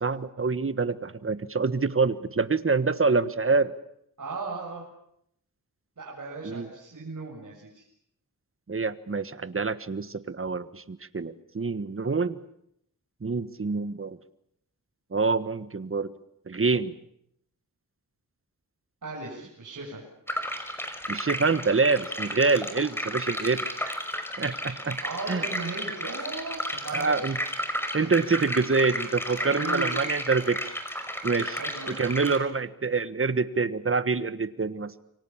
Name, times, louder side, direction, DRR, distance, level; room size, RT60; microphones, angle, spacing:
voice 1, 0.0-3.7 6.4-6.7 8.7-12.4 13.2-14.2 15.1-16.1 16.5-17.0 21.1-24.0 24.4-25.0 25.3-25.4 26.9-27.4 27.9-30.6 31.2-31.6 31.9-34.9, right 4 dB, 40° right, 13 dB, 1.5 m, -26 dB
voice 2, 4.2-4.8 6.0-7.8 19.0-20.0 25.0-27.2 29.4-29.9 31.5-32.0, right 3 dB, 60° right, -4 dB, 7.7 m, -37 dB
sound 1, 20.3-32.4, equal, 5° left, 5.5 m, -33 dB
28.5 x 24.5 x 7.4 m, 0.74 s
wide cardioid pair, 75°, 34 cm